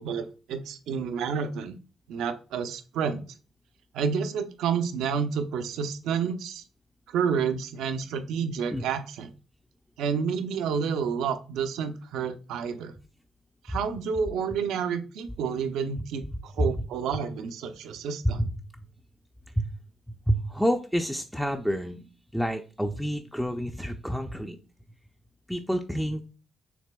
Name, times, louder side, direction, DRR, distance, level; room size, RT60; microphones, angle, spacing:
voice 1, 0.0-1.7 2.1-3.2 3.9-6.6 7.1-9.3 10.0-12.9 13.6-18.5, right 6 dB, 85° right, 9 dB, 0.5 m, -29 dB
voice 2, 20.3-22.0 22.3-24.6 25.5-26.3, equal, ahead, 4 dB, 0.4 m, -28 dB
6.0 x 3.3 x 2.2 m, 0.36 s
cardioid pair, 90°, 0 cm